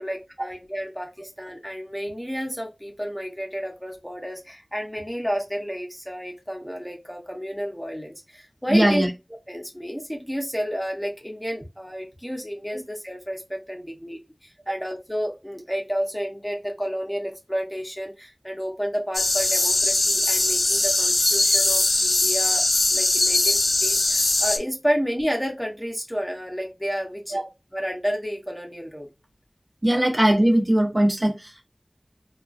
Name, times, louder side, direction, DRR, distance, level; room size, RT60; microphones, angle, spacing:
voice 1, 0.0-9.0 9.5-22.6 22.9-27.4 27.7-29.1 29.9-30.0, equal, 5° left, 0.7 m, -31 dB
voice 2, 8.7-9.1 14.7-14.8 27.3-27.5 29.8-31.6, right 1 dB, 45° right, 0.8 m, -20 dB
sound 1, 19.1-24.6, left 2 dB, 70° left, 0.4 m, -21 dB
3.0 x 2.3 x 2.5 m
wide cardioid pair, 50°, 0 cm